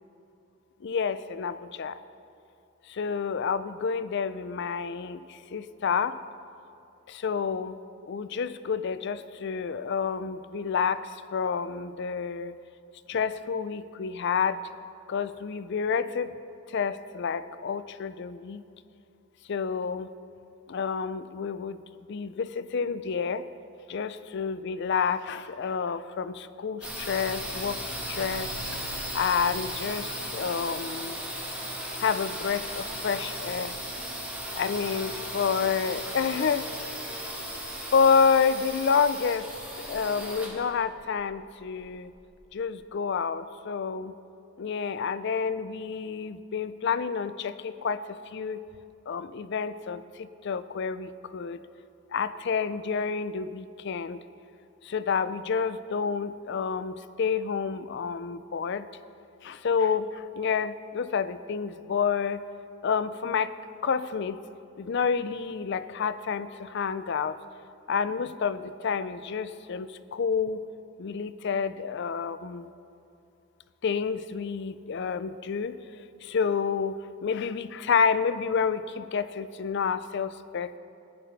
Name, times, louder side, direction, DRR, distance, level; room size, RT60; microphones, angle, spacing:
voice 1, 0.8-2.0 2.9-6.2 7.1-7.8 8.1-12.5 13.1-14.6 15.1-16.3 16.7-18.6 19.5-20.1 20.7-21.8 22.1-23.4 23.9-27.8 28.1-28.5 29.1-31.2 32.0-33.8 34.5-36.7 37.9-39.5 39.8-42.1 42.5-44.1 44.6-48.6 49.1-51.6 52.1-54.2 54.8-58.9 59.4-62.4 62.8-63.5 63.8-64.4 64.8-67.4 67.9-70.6 71.0-72.7 73.8-80.8, left 6 dB, 50° left, 13 dB, 0.4 m, -29 dB
sound 1, 26.8-42.4, equal, 5° right, 1.8 m, -36 dB
17.0 x 10.0 x 4.0 m, 2.6 s
head